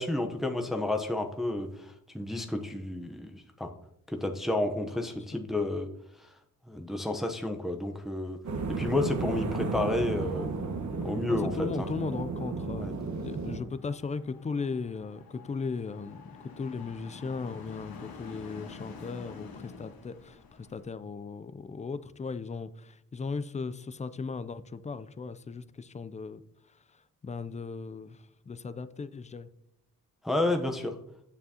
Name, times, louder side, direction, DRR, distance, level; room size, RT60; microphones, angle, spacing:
voice 1, 0.0-3.7 4.1-5.9 6.7-8.4 8.7-10.4 11.0-11.9 12.8-12.9 30.2-30.9, left 2 dB, ahead, 4 dB, 0.8 m, -31 dB
sound 1, 8.4-13.6, right 4 dB, 55° right, 1.3 m, -33 dB
voice 2, 11.3-26.4 26.9-29.5, left 4 dB, 20° left, 14 dB, 0.4 m, -37 dB
sound 2, 13.5-20.9, left 4 dB, 80° left, 1.4 m, -48 dB
9.1 x 6.7 x 2.8 m, 0.76 s
cardioid pair, 65°, 35 cm